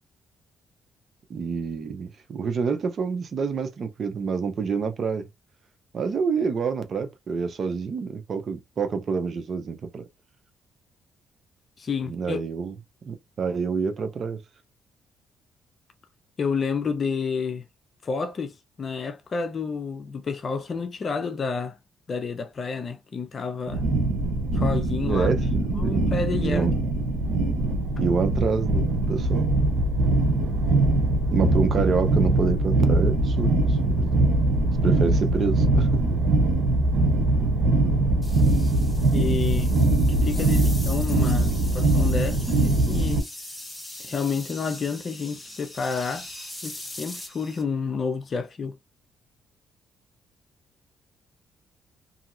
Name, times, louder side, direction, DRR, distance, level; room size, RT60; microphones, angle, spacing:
voice 1, 1.3-5.3 5.9-10.0 12.0-12.7 13.0-14.4 25.0-26.1 26.4-26.8 28.0-29.5 31.3-34.4 34.8-36.2, right 5 dB, 50° right, 0.7 m, -27 dB
voice 2, 11.8-12.4 16.4-17.6 18.0-21.8 22.1-23.8 24.5-25.3 25.7-26.7 39.1-39.7 40.2-41.5 41.7-43.2 44.0-46.3 46.6-48.7, left 5 dB, 45° left, 0.6 m, -29 dB
sound 1, 23.7-43.2, right 2 dB, 85° right, 0.8 m, -22 dB
sound 2, 38.2-47.6, left 1 dB, 10° left, 1.4 m, -41 dB
2.8 x 2.7 x 2.5 m
cardioid pair, 90°, 0 cm